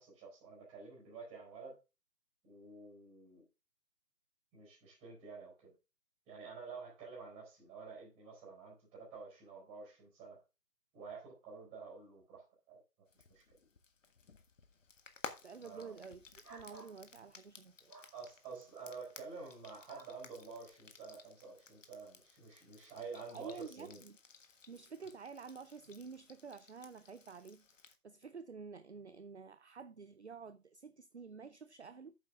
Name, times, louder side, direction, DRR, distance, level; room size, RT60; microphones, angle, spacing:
voice 1, 0.0-1.8 2.4-3.4 4.5-5.7 6.3-10.4 10.9-12.8 13.3-13.4 15.6-16.0 18.1-24.0, right 4 dB, 10° right, 4.1 m, -50 dB
Frying (food), 13.1-28.0, left 5 dB, 50° left, 1.6 m, -56 dB
voice 2, 15.4-17.9 23.3-24.2 24.7-32.2, right 5 dB, 45° right, 0.5 m, -50 dB
sound 1, 16.4-17.0 17.9-18.1 19.9-20.2, right 3 dB, 75° right, 2.5 m, -54 dB
9.0 x 7.5 x 3.5 m
figure-of-eight pair, 150°, 48 cm